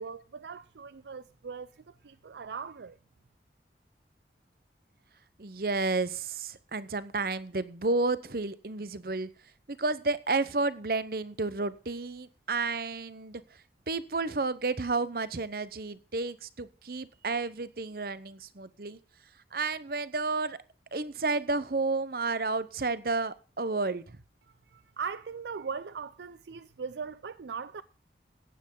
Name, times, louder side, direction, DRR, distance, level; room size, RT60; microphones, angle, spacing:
voice 1, 0.0-3.0 24.7-27.8, right 5 dB, 75° right, 0.5 m, -40 dB
voice 2, 5.4-9.3 9.7-13.4 13.9-19.0 19.5-20.6 20.9-24.2, right 3 dB, 55° right, 0.8 m, -31 dB
15.0 x 9.9 x 3.8 m
head